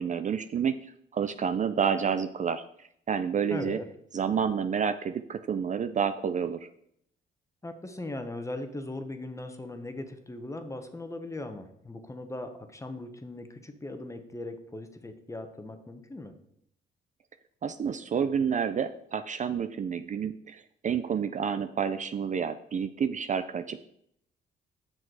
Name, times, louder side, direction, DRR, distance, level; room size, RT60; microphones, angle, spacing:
voice 1, 0.0-3.8 4.1-6.7 17.6-23.8, right 7 dB, 40° right, 10 dB, 0.4 m, -29 dB
voice 2, 3.5-3.9 7.6-16.3, left 2 dB, 15° left, 7 dB, 1.1 m, -39 dB
7.6 x 6.0 x 4.7 m, 0.72 s
cardioid pair, 90°, 20 cm